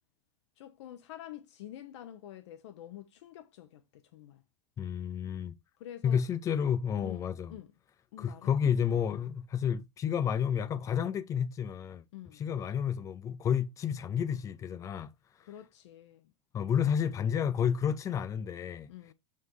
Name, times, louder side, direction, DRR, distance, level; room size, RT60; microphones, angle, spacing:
voice 1, 0.6-4.4 5.8-6.2 7.0-7.7 8.1-8.5 12.1-12.4 15.5-16.3 16.6-16.9 18.9-19.1, left 12 dB, 75° left, 1.1 m, -48 dB
voice 2, 4.8-5.5 6.0-7.6 8.2-12.0 12.3-15.1 16.5-18.9, left 8 dB, 20° left, 0.6 m, -30 dB
7.4 x 6.1 x 3.2 m
supercardioid pair, 150°, 15 cm